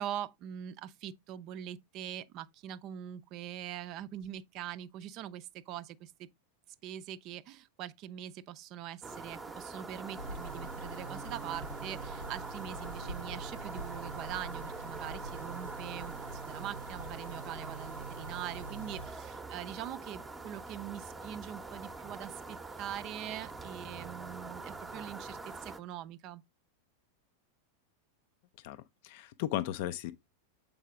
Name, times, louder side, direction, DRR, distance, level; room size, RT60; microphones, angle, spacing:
voice 1, 0.0-6.3 6.8-26.4, right 11 dB, 40° right, 0.5 m, -43 dB
sound 1, 9.0-25.8, right 3 dB, 10° right, 0.8 m, -44 dB
sound 2, 10.2-19.1, right 2 dB, 85° right, 0.6 m, -45 dB
voice 2, 28.6-30.1, left 13 dB, 50° left, 0.4 m, -36 dB
7.3 x 4.8 x 3.6 m
figure-of-eight pair, 90°, 0 cm